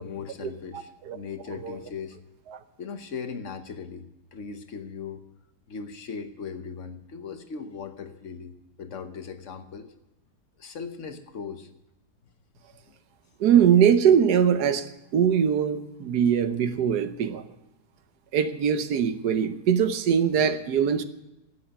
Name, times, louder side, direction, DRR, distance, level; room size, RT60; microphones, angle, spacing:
voice 1, 0.0-2.2 2.8-5.2 5.7-9.9 10.6-11.7 12.9-13.0, left 6 dB, 55° left, 9 dB, 1.2 m, -38 dB
voice 2, 13.4-14.9 15.1-17.4 18.3-21.0, right 8 dB, 80° right, 11 dB, 1.4 m, -21 dB
11.5 x 8.4 x 8.9 m, 0.91 s
omnidirectional pair, 1.7 m